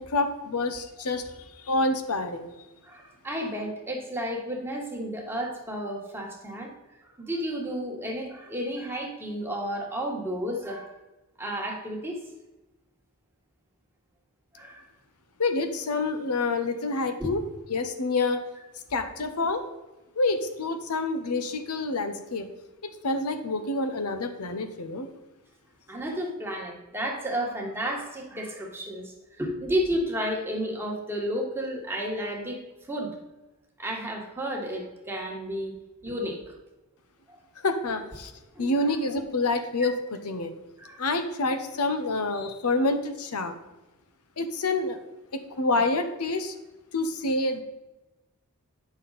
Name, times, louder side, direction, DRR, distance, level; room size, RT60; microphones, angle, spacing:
voice 1, 0.0-2.5 15.4-17.4 17.7-18.4 18.9-19.6 20.2-22.5 22.8-25.1 37.6-38.3 38.6-39.9 40.2-40.5 41.0-43.5 44.4-45.0 45.3-46.5 46.9-47.6, left 2 dB, 85° left, 7 dB, 0.9 m, -27 dB
voice 2, 2.8-6.7 7.0-11.0 11.4-12.2 14.5-14.8 17.2-17.3 25.9-32.6 32.9-33.1 33.8-35.7 36.0-36.6 37.3-37.4 38.5-38.7 40.8-41.0, equal, 10° right, 0 dB, 1.4 m, -32 dB
9.3 x 6.2 x 4.1 m, 1.0 s
head